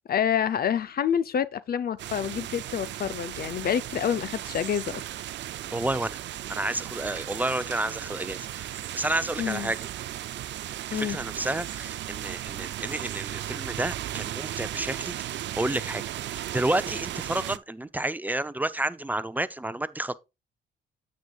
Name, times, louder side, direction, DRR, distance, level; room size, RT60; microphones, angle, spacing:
voice 1, 0.1-5.0 9.4-9.7 10.9-11.2, left 8 dB, 50° left, 0.6 m, -27 dB
sound 1, 2.0-17.6, right 13 dB, 65° right, 0.5 m, -36 dB
voice 2, 5.7-6.2 6.5-9.8 10.9-20.2, right 1 dB, 10° right, 0.6 m, -30 dB
9.3 x 8.3 x 2.4 m
cardioid pair, 90°, 20 cm